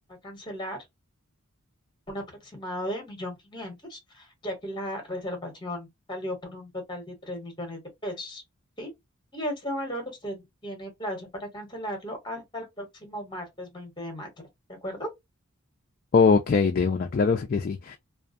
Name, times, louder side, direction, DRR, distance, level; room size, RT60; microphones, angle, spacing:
voice 1, 0.2-0.8 2.1-8.4 8.8-8.9 9.3-15.1, equal, 20° left, 1.0 m, -36 dB
voice 2, 16.1-18.0, left 5 dB, 40° left, 0.3 m, -22 dB
2.4 x 2.2 x 2.5 m
head